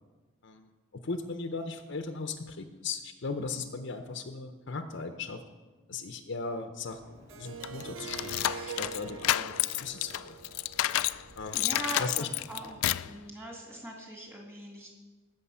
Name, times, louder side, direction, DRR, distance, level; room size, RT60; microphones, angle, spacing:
voice 1, 0.4-5.4 5.9-8.3 8.7-10.4 10.8-11.1 11.4-12.3, left 4 dB, 55° left, 7 dB, 0.6 m, -38 dB
sound 1, 6.9-13.2, equal, 55° right, 4.4 m, -57 dB
Harp, 7.3-12.2, right 6 dB, 75° right, 0.5 m, -45 dB
sound 2, 7.6-11.2 11.5-13.1, left 14 dB, 85° left, 0.3 m, -30 dB
voice 2, 11.5-14.9, right 1 dB, 10° right, -1 dB, 2.1 m, -41 dB
14.5 x 6.6 x 5.5 m, 1.3 s
head